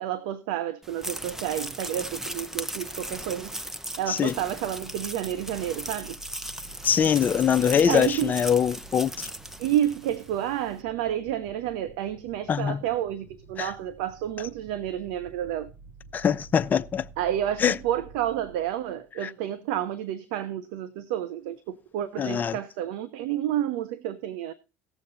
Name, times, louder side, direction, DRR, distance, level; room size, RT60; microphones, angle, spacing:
voice 1, 0.0-3.5 4.0-6.2 7.9-8.3 9.6-15.7 17.2-24.5, right 11 dB, 80° right, 0.8 m, -30 dB
sound 1, 0.8-10.4, right 1 dB, 10° right, 0.8 m, -37 dB
sound 2, 4.0-19.1, right 4 dB, 60° right, 2.5 m, -50 dB
voice 2, 6.8-9.3 12.5-12.8 13.6-13.7 16.1-17.0 17.6-17.7 19.2-19.3 22.2-22.6, left 8 dB, 35° left, 0.7 m, -23 dB
17.0 x 7.1 x 4.1 m
supercardioid pair, 80°, 5 cm